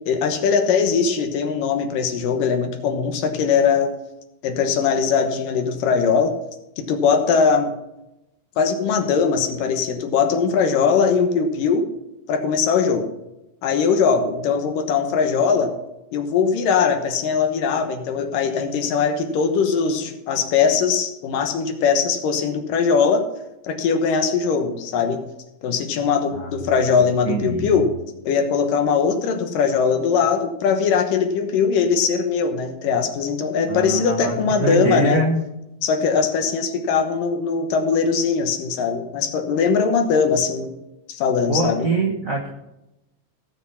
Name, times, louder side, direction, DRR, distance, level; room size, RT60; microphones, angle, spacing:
voice 1, 0.1-3.9 4.4-6.4 6.8-7.7 8.6-11.9 12.3-13.1 13.6-15.7 16.1-23.3 23.6-25.2 25.6-27.9 28.2-35.2 35.8-40.7 41.1-41.9, left 6 dB, 70° left, 6 dB, 2.7 m, -20 dB
voice 2, 27.2-27.8 33.7-35.4 41.5-42.5, right 2 dB, 60° right, -1 dB, 0.8 m, -23 dB
16.5 x 6.2 x 5.8 m, 0.91 s
omnidirectional pair, 4.1 m